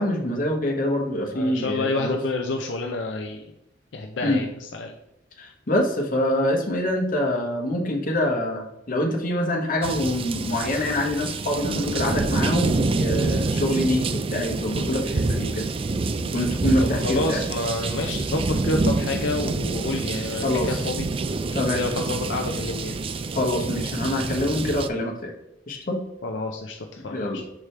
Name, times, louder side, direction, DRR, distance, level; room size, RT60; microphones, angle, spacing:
voice 1, 0.0-2.2 4.2-4.4 5.4-15.7 16.2-17.4 20.4-20.8 21.5-21.9 23.3-25.3 25.7-26.0 27.1-27.4, left 1 dB, 50° left, 1 dB, 1.2 m, -25 dB
voice 2, 1.3-3.5 3.9-4.9 16.8-21.1 21.5-23.0 26.2-27.4, left 2 dB, 75° left, 2 dB, 0.6 m, -29 dB
sound 1, 9.8-24.9, right 3 dB, 30° right, 0.3 m, -27 dB
6.1 x 4.9 x 3.3 m, 0.86 s
head